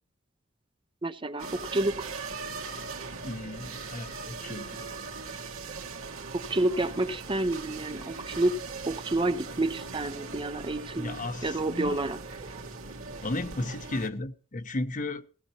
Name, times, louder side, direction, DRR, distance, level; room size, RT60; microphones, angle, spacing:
voice 1, 1.0-2.1 6.3-8.6 8.9-12.2, right 2 dB, 25° right, 0.7 m, -29 dB
sound 1, 1.4-14.1, right 4 dB, 85° right, 2.2 m, -40 dB
voice 2, 3.2-4.9 11.0-12.0 13.2-15.3, left 2 dB, 40° left, 0.9 m, -34 dB
18.0 x 17.0 x 2.9 m
head